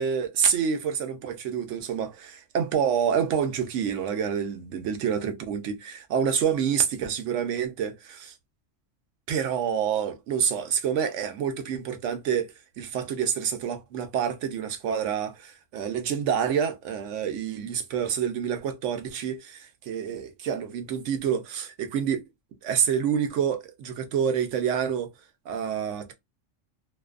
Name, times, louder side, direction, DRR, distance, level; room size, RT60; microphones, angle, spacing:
voice 1, 0.0-8.3 9.3-12.5 12.8-22.2 22.6-25.1 25.5-26.1, right 8 dB, 80° right, 0.9 m, -27 dB
2.6 x 2.1 x 2.4 m
omnidirectional pair, 1.3 m